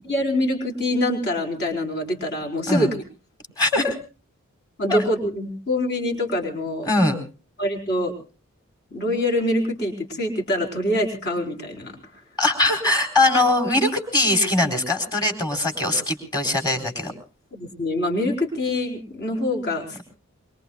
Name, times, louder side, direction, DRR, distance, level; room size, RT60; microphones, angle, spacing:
voice 1, 0.1-3.0 3.8-3.9 4.8-6.9 7.6-8.1 8.9-11.9 17.5-20.0, left 1 dB, 50° left, 2 dB, 4.6 m, -25 dB
voice 2, 3.6-3.9 4.9-5.0 6.8-7.2 12.4-17.1, left 2 dB, 20° left, 4 dB, 4.0 m, -21 dB
24.0 x 23.5 x 2.4 m, 0.34 s
head